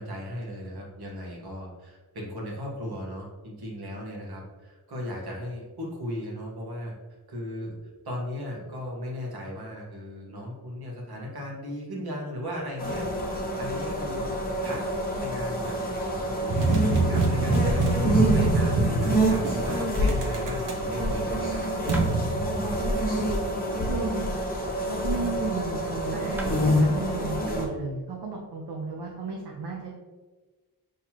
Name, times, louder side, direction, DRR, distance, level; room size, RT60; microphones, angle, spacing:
voice 1, 0.0-6.9 7.3-7.7 8.0-14.8 15.2-21.7, left 1 dB, 70° right, -2 dB, 1.4 m, -37 dB
sound 1, 12.8-27.6, equal, 20° left, 1.0 m, -27 dB
sound 2, 16.5-23.3, right 2 dB, 55° right, 0.7 m, -26 dB
sound 3, 21.9-22.2 24.1-25.4 26.0-26.1 26.4-26.6, right 1 dB, 5° right, 0.4 m, -42 dB
voice 2, 23.7-24.3 24.9-29.9, right 4 dB, 85° right, -1 dB, 0.7 m, -34 dB
5.7 x 3.2 x 2.9 m, 1.3 s
wide cardioid pair, 120°, 39 cm